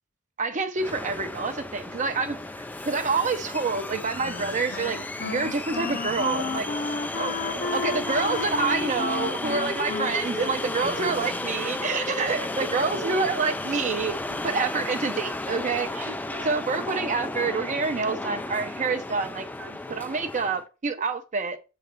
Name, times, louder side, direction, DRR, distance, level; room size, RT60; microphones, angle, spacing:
voice 1, 0.4-6.7 7.2-7.4 7.7-14.2 14.4-16.1 16.4-19.5 19.9-21.6, right 4 dB, 35° right, 0.6 m, -27 dB
sound 1, 0.8-20.6, left 2 dB, 10° left, 0.3 m, -33 dB
voice 2, 1.9-2.4 7.1-8.3 9.5-9.6 10.1-11.2 12.0-13.6 14.3-14.6 16.0-16.9 19.6-20.1 20.9-21.0, right 4 dB, 85° right, 0.8 m, -43 dB
Wind instrument woodwind instrument, 4.2-11.7, left 4 dB, 45° left, 0.7 m, -34 dB
7.6 x 3.2 x 5.2 m
head